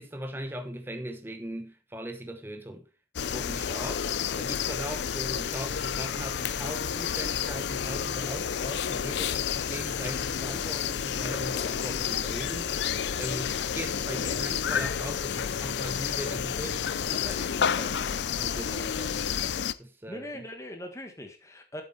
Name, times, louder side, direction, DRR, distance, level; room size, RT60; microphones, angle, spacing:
voice 1, 0.0-2.9 3.2-12.9 13.2-18.1 18.3-19.3 19.8-20.4, right 1 dB, 10° right, 0.9 m, -39 dB
sound 1, 3.2-19.7, left 8 dB, 70° left, 0.5 m, -30 dB
voice 2, 20.1-21.8, left 1 dB, 15° left, 1.5 m, -41 dB
8.2 x 7.3 x 4.3 m
head